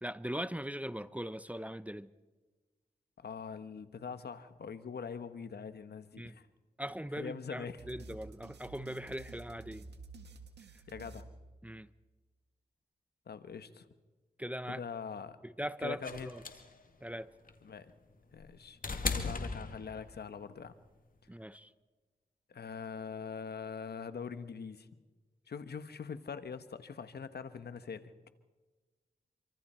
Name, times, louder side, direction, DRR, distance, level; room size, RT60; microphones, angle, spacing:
voice 1, 0.0-2.1 6.2-6.4 6.8-9.9 11.6-11.9 14.4-14.8 15.4-16.4 17.0-17.3 21.3-21.7, equal, 10° right, 0.8 m, -40 dB
voice 2, 3.2-6.5 7.1-7.8 10.9-11.2 13.3-13.9 14.7-15.4 15.8-16.3 17.6-17.9 18.3-18.8 19.1-20.7 22.5-24.9 25.5-28.1, left 6 dB, 70° left, 1.2 m, -43 dB
sound 1, 7.8-12.1, right 3 dB, 85° right, 1.7 m, -51 dB
sound 2, 16.0-20.3 21.5-21.6, left 4 dB, 55° left, 2.2 m, -38 dB
27.0 x 24.5 x 4.4 m
cardioid pair, 45°, 17 cm